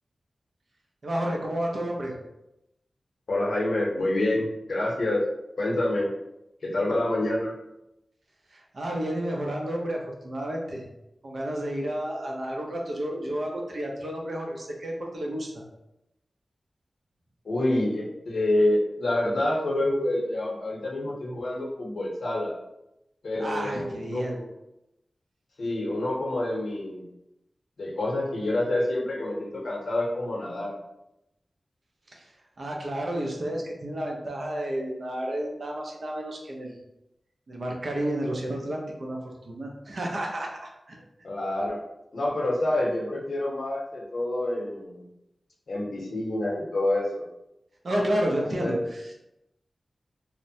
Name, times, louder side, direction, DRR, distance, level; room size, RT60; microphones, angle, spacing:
voice 1, 1.0-2.1 8.5-10.9 11.2-15.6 23.4-24.4 32.1-32.2 32.6-36.8 37.5-39.2 39.5-41.0 47.8-49.1, right 1 dB, 65° right, -1 dB, 0.6 m, -31 dB
voice 2, 3.3-5.2 5.6-6.1 6.6-7.5 17.4-22.5 23.2-24.5 25.6-27.0 27.8-30.7 41.2-41.8 42.1-45.1 45.7-47.2 48.6-48.8, left 1 dB, 80° left, -3 dB, 0.7 m, -27 dB
2.9 x 2.1 x 2.6 m, 0.88 s
wide cardioid pair, 90°, 0 cm